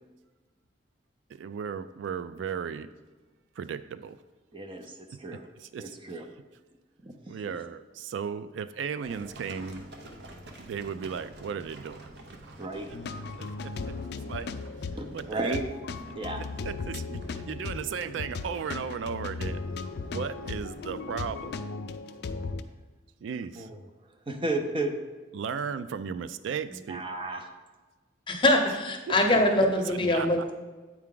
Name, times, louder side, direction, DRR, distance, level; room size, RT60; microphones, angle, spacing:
voice 1, 1.3-2.9 3.6-4.2 5.6-6.0 7.3-9.9 10.6-12.4 13.4-14.0 14.3-14.5 15.1-15.6 16.7-19.6 20.0-21.5 23.2-23.7 25.3-27.1 29.1-29.2 29.9-30.3, right 6 dB, 85° right, 13 dB, 0.3 m, -35 dB
voice 2, 4.5-5.4 5.8-6.2 7.0-7.4 12.6-12.9 15.0-15.6 16.1-16.4 23.6-23.7 24.3-25.0 26.7-27.5, right 2 dB, 30° right, 5 dB, 0.6 m, -33 dB
Livestock farm animals working animals, 9.0-21.5, right 1 dB, 60° right, 0.8 m, -49 dB
sound 1, 12.9-22.6, left 4 dB, 60° left, 0.4 m, -37 dB
voice 3, 28.3-30.5, left 1 dB, 25° left, 3 dB, 0.8 m, -23 dB
8.5 x 4.6 x 3.8 m, 1.3 s
head